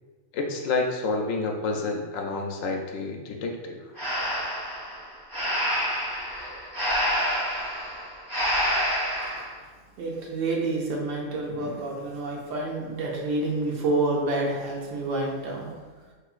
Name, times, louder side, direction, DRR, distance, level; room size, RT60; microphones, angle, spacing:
voice 1, 0.3-3.9, left 3 dB, 90° left, 2 dB, 1.0 m, -29 dB
Breathing, 4.0-9.5, equal, 45° right, 1.3 m, -28 dB
voice 2, 9.2-9.7 10.0-15.7, right 2 dB, 85° right, -2 dB, 1.1 m, -28 dB
3.8 x 2.9 x 2.4 m, 1.4 s
omnidirectional pair, 1.3 m